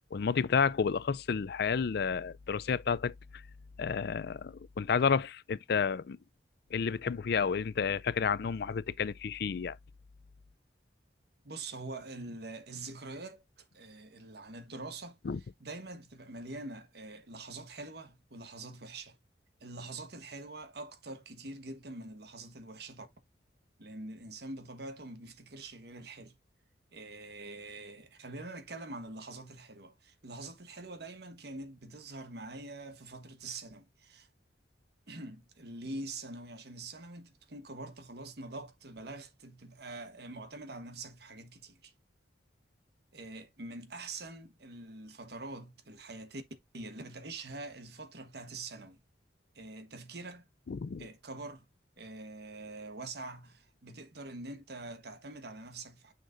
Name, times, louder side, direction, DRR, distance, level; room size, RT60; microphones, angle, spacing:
voice 1, 0.0-3.1 3.8-6.2 6.7-9.8 15.3-15.4 50.7-51.1, left 6 dB, 60° left, 0.4 m, -31 dB
voice 2, 11.4-15.2 15.6-19.2 19.6-23.1 23.8-26.3 26.9-34.3 35.1-41.9 43.1-46.4 46.7-49.0 49.5-50.5 51.0-51.7 52.0-56.1, right 2 dB, 60° right, 1.3 m, -45 dB
6.7 x 6.4 x 2.5 m
head